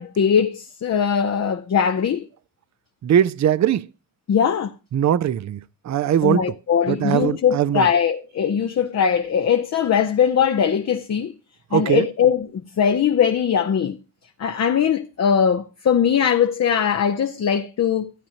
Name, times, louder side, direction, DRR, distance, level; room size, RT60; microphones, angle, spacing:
voice 1, 0.0-2.3 4.3-4.7 6.2-11.3 11.7-14.0 14.4-18.1, left 7 dB, 50° left, 0.6 m, -20 dB
voice 2, 3.0-3.9 4.9-5.6 5.8-6.4 6.9-7.9 11.7-12.1, right 10 dB, 55° right, 0.5 m, -20 dB
13.5 x 8.5 x 2.9 m
cardioid pair, 60°, 34 cm